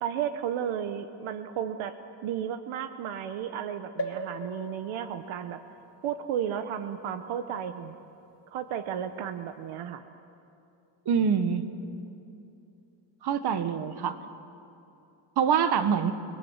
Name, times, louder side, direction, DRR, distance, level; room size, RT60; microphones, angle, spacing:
voice 1, 0.0-2.0 2.2-5.6 6.0-8.0 8.5-10.0, right 9 dB, 80° right, 10 dB, 1.1 m, -33 dB
sound 1, 4.0-7.7 8.3-8.4 8.6-8.7, equal, 30° left, 2.2 m, -40 dB
voice 2, 11.0-11.7 13.2-14.2 15.4-16.1, right 7 dB, 55° right, 10 dB, 1.5 m, -25 dB
29.5 x 20.5 x 7.4 m, 2.7 s
cardioid pair, 125°, 48 cm